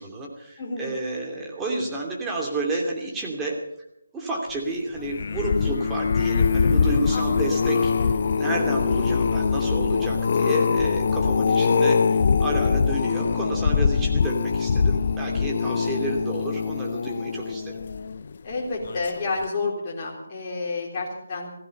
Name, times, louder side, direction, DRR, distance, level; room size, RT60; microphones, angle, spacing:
voice 1, 0.0-3.6 4.1-17.8, right 2 dB, 10° right, -2 dB, 2.7 m, -31 dB
voice 2, 0.6-0.9 7.1-7.6 18.4-21.5, left 3 dB, 25° left, -4 dB, 3.7 m, -30 dB
sound 1, 5.0-18.3 18.9-19.2 19.4-19.5, left 5 dB, 45° left, 0.7 m, -23 dB
16.5 x 15.5 x 5.5 m, 0.82 s
figure-of-eight pair, 150°, 0 cm